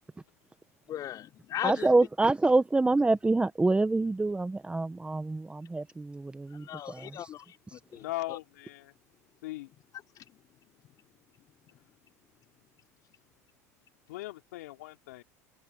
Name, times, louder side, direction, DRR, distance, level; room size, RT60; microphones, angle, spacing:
voice 1, 0.9-1.9 6.5-8.4 9.9-10.4, left 11 dB, 45° left, 4.8 m, -38 dB
voice 2, 1.6-6.6, right 2 dB, 10° right, 1.4 m, -26 dB
voice 3, 7.9-8.9 9.4-9.7 14.1-15.2, left 18 dB, 75° left, 3.3 m, -39 dB
hypercardioid pair, 85°, 9 cm